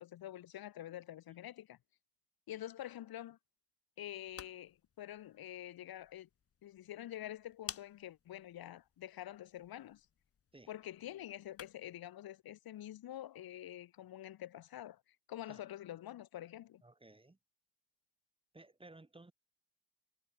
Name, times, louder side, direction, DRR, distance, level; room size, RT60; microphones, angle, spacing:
voice 1, 0.0-1.8 2.5-3.4 4.0-6.3 6.6-10.1 10.7-15.0 15.3-16.8, left 12 dB, 70° left, 2.7 m, -47 dB
sound 1, 4.0-12.0, left 7 dB, 35° left, 1.3 m, -55 dB
voice 2, 16.8-17.4 18.5-19.3, right 2 dB, 15° right, 3.8 m, -57 dB
cardioid pair, 90°, 38 cm